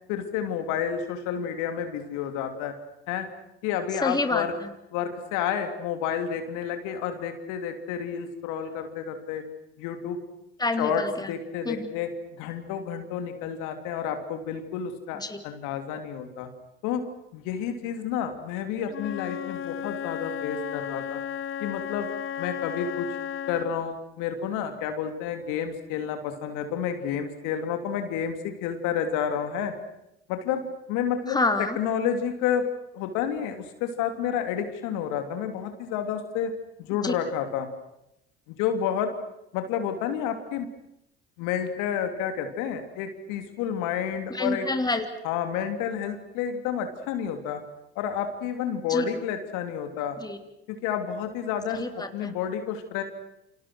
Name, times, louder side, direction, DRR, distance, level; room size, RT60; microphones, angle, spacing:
voice 1, 0.1-2.7 3.1-3.3 3.6-4.5 4.9-9.4 9.8-10.2 10.8-11.0 11.3-12.1 12.4-16.5 16.8-17.0 17.3-21.2 21.6-22.1 22.4-23.1 23.5-29.7 30.3-30.6 30.9-31.4 31.8-32.7 32.9-36.5 36.8-37.7 38.5-39.1 39.5-40.7 41.4-44.7 45.2-47.6 47.9-50.2 50.7-51.8 52.1-53.0, left 8 dB, 70° left, 6 dB, 3.3 m, -30 dB
voice 2, 4.0-4.7 10.6-11.3 11.6-11.9 15.1-15.4 31.3-31.8 37.0-37.1 44.3-45.1 48.9-49.0 50.2-50.4 51.7-52.3, left 2 dB, 10° left, 6 dB, 3.3 m, -28 dB
Wind instrument woodwind instrument, 18.9-23.8, left 8 dB, 40° left, 1.1 m, -34 dB
29.0 x 27.0 x 6.4 m, 0.83 s
hypercardioid pair, 65°, 32 cm